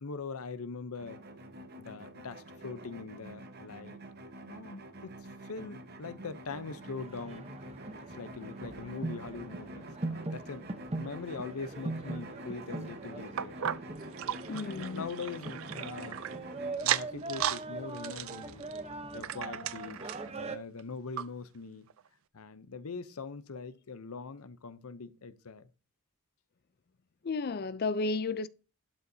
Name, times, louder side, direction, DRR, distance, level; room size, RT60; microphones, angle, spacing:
voice 1, 0.0-1.2 1.8-4.0 4.5-5.1 5.4-7.5 8.1-10.7 10.9-13.6 14.4-16.2 16.8-18.7 19.1-21.9 22.3-25.7, left 4 dB, 80° left, 0.7 m, -42 dB
sound 1, 1.0-16.7, right 1 dB, 45° right, 1.1 m, -47 dB
sound 2, 6.6-20.6, right 2 dB, 30° right, 0.8 m, -41 dB
sound 3, 13.4-16.3 16.7-17.6 17.9-20.3 20.8-20.9 21.2-21.3 21.9-22.0, right 10 dB, 70° right, 0.4 m, -35 dB
voice 2, 14.5-15.1 27.2-28.5, left 3 dB, 45° left, 0.4 m, -32 dB
12.0 x 9.7 x 2.7 m
head